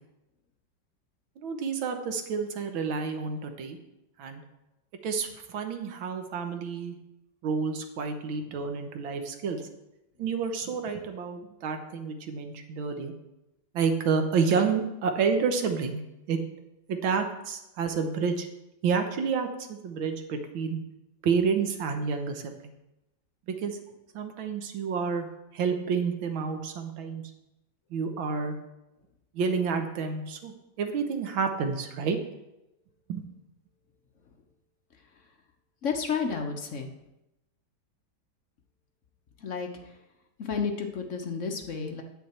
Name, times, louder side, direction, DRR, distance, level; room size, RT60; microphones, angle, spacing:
voice 1, 1.4-3.8 4.2-4.4 5.0-7.0 7.4-9.6 10.2-13.1 13.7-16.0 16.3-16.4 16.9-18.5 18.8-20.8 21.2-22.5 23.6-23.8 24.1-25.3 25.5-27.2 27.9-28.6 29.3-32.2 33.1-33.2, right 5 dB, 70° right, 6 dB, 1.8 m, -29 dB
voice 2, 35.8-36.9 39.4-39.7 40.4-42.0, left 5 dB, 55° left, 3 dB, 0.9 m, -31 dB
9.5 x 8.2 x 4.3 m, 0.92 s
omnidirectional pair, 2.3 m